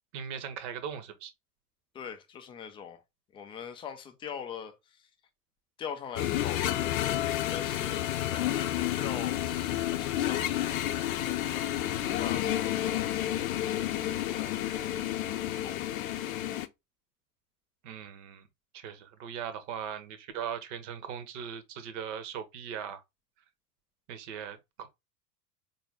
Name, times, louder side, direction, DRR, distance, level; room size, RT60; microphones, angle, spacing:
voice 1, 0.1-1.3 17.8-18.5 18.7-23.0 24.1-24.9, right 8 dB, 50° right, 1.0 m, -39 dB
voice 2, 1.9-3.0 3.3-5.1 5.8-6.9 7.5-15.0 15.4-15.9 22.8-22.9, left 7 dB, 15° left, 0.3 m, -43 dB
sound 1, 6.2-16.7, left 13 dB, 65° left, 0.6 m, -30 dB
4.3 x 2.7 x 3.3 m
figure-of-eight pair, 80°, 46 cm